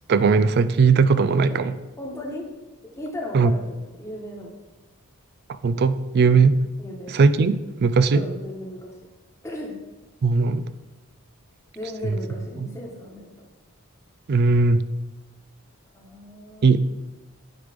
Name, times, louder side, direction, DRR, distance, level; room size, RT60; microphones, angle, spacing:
voice 1, 0.1-1.7 3.3-3.5 5.5-6.6 7.1-8.2 10.2-10.7 12.6-12.7 14.3-14.8 16.6-16.8, right 4 dB, 45° right, 14 dB, 0.3 m, -18 dB
voice 2, 2.0-2.5 2.9-4.5 6.2-6.4 6.8-7.2 8.1-8.9 9.4-9.7 11.7-13.3 15.9-16.8, left 1 dB, 15° left, -2 dB, 1.2 m, -36 dB
9.6 x 3.2 x 5.1 m, 1.1 s
head